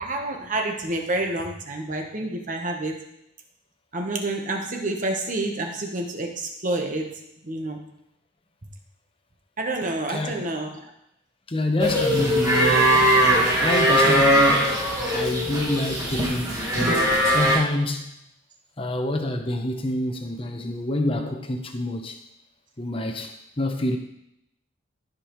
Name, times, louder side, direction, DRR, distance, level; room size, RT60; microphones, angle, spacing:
voice 1, 0.0-3.0 3.9-7.1 7.4-7.8 9.6-10.7, right 2 dB, 40° right, 2 dB, 1.1 m, -28 dB
voice 2, 11.5-12.9 13.6-14.7 15.1-17.0 17.3-18.1 18.8-22.2 22.8-24.0, left 1 dB, 30° left, 5 dB, 0.8 m, -27 dB
sound 1, 11.8-17.6, equal, 15° right, 1.8 m, -20 dB
14.5 x 5.3 x 3.1 m, 0.82 s
head